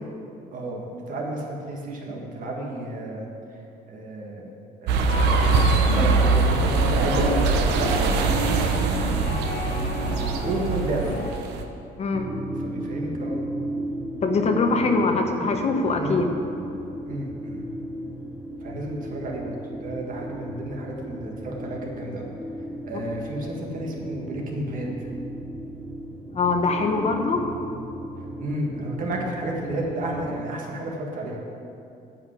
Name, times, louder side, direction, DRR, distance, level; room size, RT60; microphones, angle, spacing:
voice 1, 0.5-3.2 3.5-3.6 3.9-4.4 4.8-5.1 5.8-8.9 10.4-11.1 12.6-13.4 16.0-16.2 17.1-17.6 18.6-22.3 22.6-25.1 28.2-31.4, right 1 dB, 55° right, -1 dB, 2.0 m, -32 dB
sound 1, 4.9-11.6, right 4 dB, 90° right, 0.9 m, -22 dB
sound 2, 5.1-11.3, left 2 dB, 70° left, 1.4 m, -31 dB
voice 2, 12.0-12.3 14.2-16.3 26.3-27.4, left 3 dB, 40° left, 4 dB, 1.0 m, -23 dB
sound 3, 12.1-30.4, right 1 dB, 15° right, 0.9 m, -35 dB
9.1 x 5.8 x 8.3 m, 2.7 s
cardioid pair, 110°, 17 cm